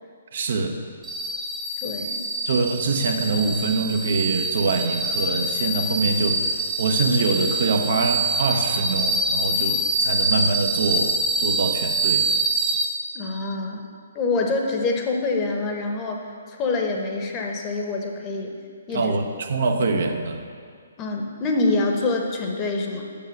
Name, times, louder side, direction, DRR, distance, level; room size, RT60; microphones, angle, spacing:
voice 1, 0.3-0.8 2.4-12.3 18.9-20.5, right 3 dB, 55° right, 4 dB, 0.8 m, -24 dB
sound 1, 1.0-12.9, right 2 dB, 10° right, 0.9 m, -25 dB
voice 2, 1.8-2.2 13.1-13.9 14.1-18.5 18.9-19.1 21.0-23.0, left 3 dB, 25° left, 2 dB, 1.0 m, -26 dB
7.0 x 6.5 x 6.6 m, 2.1 s
figure-of-eight pair, 130°, 0 cm